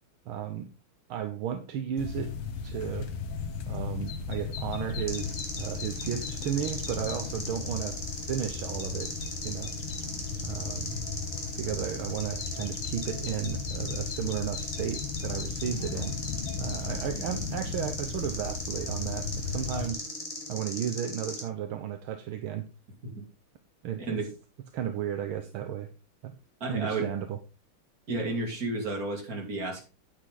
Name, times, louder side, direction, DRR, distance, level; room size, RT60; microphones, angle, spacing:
voice 1, 0.3-0.7 1.1-2.4 2.6-3.1 3.7-8.0 8.3-9.1 9.4-9.7 10.4-11.0 11.6-16.1 16.6-20.0 20.5-22.7 23.8-24.2 24.7-25.9 26.2-26.3 26.7-27.4, right 10 dB, 75° right, 8 dB, 1.7 m, -34 dB
sound 1, 2.0-19.9, left 5 dB, 75° left, 2.1 m, -36 dB
sound 2, 5.1-21.4, left 1 dB, 15° left, 2.9 m, -38 dB
voice 2, 26.6-27.1 28.1-29.8, right 2 dB, 40° right, 2 dB, 3.1 m, -32 dB
9.5 x 8.8 x 3.8 m, 0.31 s
omnidirectional pair, 2.4 m